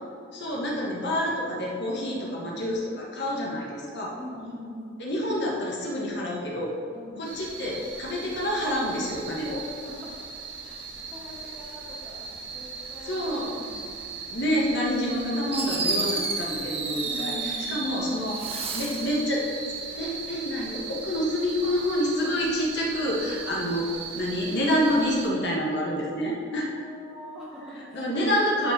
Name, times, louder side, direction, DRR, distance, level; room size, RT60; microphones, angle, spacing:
voice 1, 0.3-4.2 5.0-6.7 7.2-9.6 13.0-13.5 14.3-19.4 20.0-23.9 24.1-26.7 27.9-28.7, equal, 55° left, -3 dB, 1.6 m, -28 dB
voice 2, 2.1-2.6 4.2-5.0 6.9-7.2 9.3-9.5 9.8-10.1 10.4-13.9 17.0-17.8 18.2-18.4 26.6-28.2 28.5-28.7, equal, 5° right, -9 dB, 2.3 m, -43 dB
sound 1, 7.2-25.3, right 4 dB, 60° right, 1.5 m, -38 dB
Fireworks, 15.1-15.2 15.5-18.0 18.3-19.2, right 4 dB, 30° right, 0.9 m, -31 dB
11.5 x 5.3 x 4.3 m, 2.4 s
head